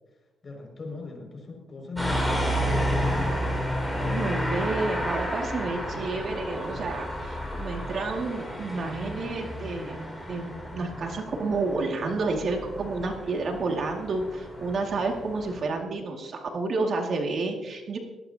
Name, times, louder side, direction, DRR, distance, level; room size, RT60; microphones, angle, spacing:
voice 1, 0.4-2.9, left 3 dB, 35° left, 1 dB, 6.0 m, -39 dB
sound 1, 2.0-15.6, equal, ahead, 5.3 m, -31 dB
voice 2, 4.1-10.0 10.3-18.0, right 3 dB, 55° right, 2 dB, 2.2 m, -30 dB
18.0 x 17.5 x 2.9 m, 1.2 s
cardioid pair, 90°, 0 cm